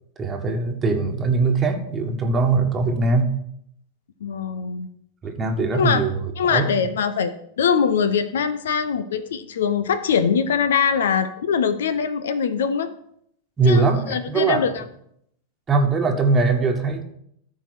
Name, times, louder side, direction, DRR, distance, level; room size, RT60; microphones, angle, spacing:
voice 1, 0.2-3.3 5.2-6.7 13.6-14.7 15.7-17.0, right 3 dB, 20° right, 2 dB, 1.4 m, -21 dB
voice 2, 4.2-4.9 5.7-6.0 6.4-12.9 13.7-14.8, left 6 dB, 60° left, 13 dB, 0.6 m, -22 dB
13.5 x 4.8 x 6.0 m, 0.70 s
figure-of-eight pair, 90°, 0 cm